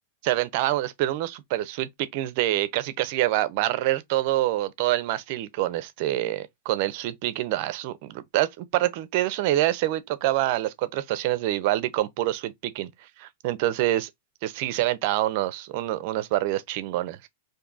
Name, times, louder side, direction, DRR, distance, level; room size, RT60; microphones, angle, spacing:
voice 1, 0.2-12.9 13.2-14.1 14.4-17.2, right 15 dB, 50° right, 0.5 m, -26 dB
2.6 x 2.3 x 3.8 m
supercardioid pair, 150°, 0 cm